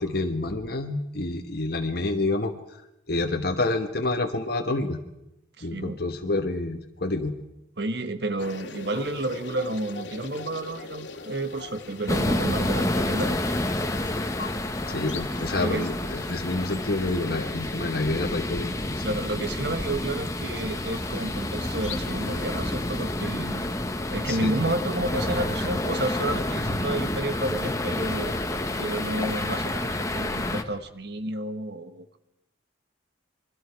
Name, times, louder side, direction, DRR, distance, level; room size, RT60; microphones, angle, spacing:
voice 1, 0.0-2.5 3.1-5.0 5.6-7.3 14.9-19.0 24.3-24.5, left 2 dB, 55° left, 4 dB, 1.3 m, -28 dB
voice 2, 5.6-6.0 7.8-13.6 15.5-15.9 19.0-23.6 24.1-28.3 28.8-32.2, right 1 dB, 60° right, 9 dB, 1.5 m, -31 dB
sound 1, 8.4-23.4, left 4 dB, 80° left, 2.1 m, -43 dB
sound 2, 12.1-30.6, left 1 dB, 15° left, 1.3 m, -29 dB
27.5 x 23.0 x 4.8 m, 0.89 s
head